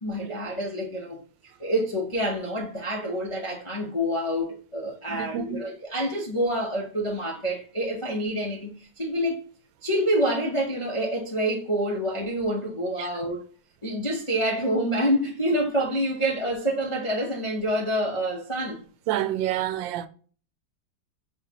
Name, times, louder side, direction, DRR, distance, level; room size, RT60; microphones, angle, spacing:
voice 1, 0.0-9.4 9.8-13.4 13.8-18.8, equal, 40° left, 0.4 m, -27 dB
voice 2, 5.1-5.6 13.0-13.1 19.1-20.1, right 12 dB, 90° right, 1.3 m, -28 dB
5.9 x 3.1 x 2.7 m
omnidirectional pair, 2.0 m